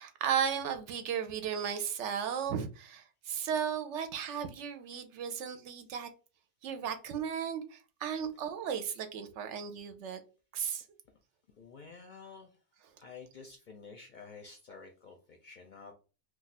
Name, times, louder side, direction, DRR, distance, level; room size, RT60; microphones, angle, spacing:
voice 1, 0.0-6.1 6.6-10.2 10.5-10.8, right 8 dB, 75° right, 0.9 m, -35 dB
voice 2, 11.6-12.5 13.0-15.9, left 5 dB, 55° left, 0.6 m, -50 dB
2.4 x 2.3 x 4.0 m
omnidirectional pair, 1.3 m